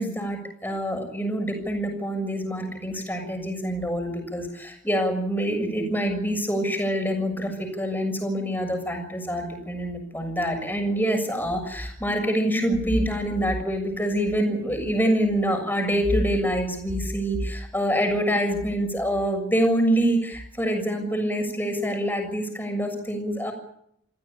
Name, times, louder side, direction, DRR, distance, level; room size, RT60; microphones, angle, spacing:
voice 1, 0.0-23.5, equal, 10° left, 5 dB, 6.8 m, -26 dB
27.5 x 16.0 x 8.7 m, 0.71 s
head